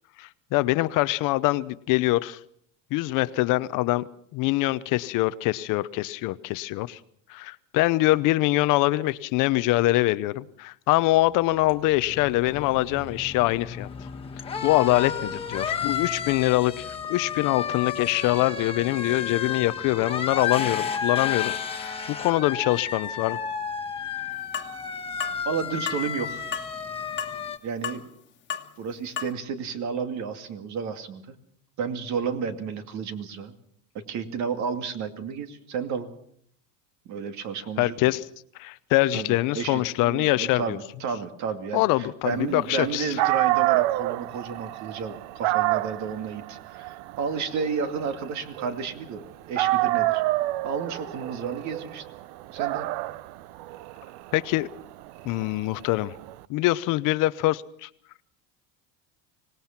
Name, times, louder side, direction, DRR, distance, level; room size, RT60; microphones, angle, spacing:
voice 1, 0.2-2.4 2.9-4.1 4.3-7.0 7.3-13.9 14.6-23.4 37.8-38.2 38.6-40.8 41.7-43.2 54.3-54.7 55.2-56.1 56.5-57.9, left 18 dB, 60° left, 16 dB, 0.8 m, -24 dB
sound 1, 11.3-27.6, left 7 dB, 15° left, 1.6 m, -32 dB
sound 2, 24.5-24.7 25.2-25.4 25.9-26.0 26.5-26.7 27.2-27.4 27.8-28.0 28.5-28.7 29.2-29.3, left 7 dB, 30° left, 1.7 m, -32 dB
voice 2, 25.5-26.4 27.6-28.1 28.8-31.2 31.8-33.5 33.9-36.1 37.1-38.1 39.1-50.2 50.6-52.0 52.5-52.9, right 6 dB, 50° right, 8 dB, 2.4 m, -32 dB
Dog, 42.9-43.0 43.2-49.2 49.6-56.3, right 18 dB, 75° right, 0.7 m, -28 dB
25.0 x 18.5 x 5.9 m, 0.65 s
cardioid pair, 140°, 36 cm